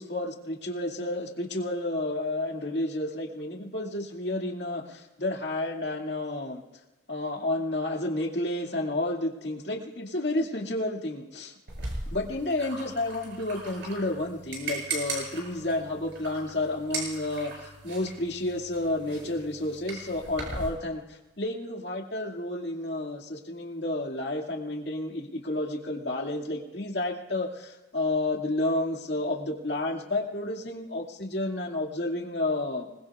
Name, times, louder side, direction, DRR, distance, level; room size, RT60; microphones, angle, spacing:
voice 1, 0.0-6.6 7.1-11.5 12.1-32.9, left 2 dB, 60° left, 1 dB, 2.2 m, -31 dB
sound 1, 11.7-20.7, right 2 dB, 65° right, 7.3 m, -38 dB
26.5 x 20.5 x 2.4 m, 1.1 s
head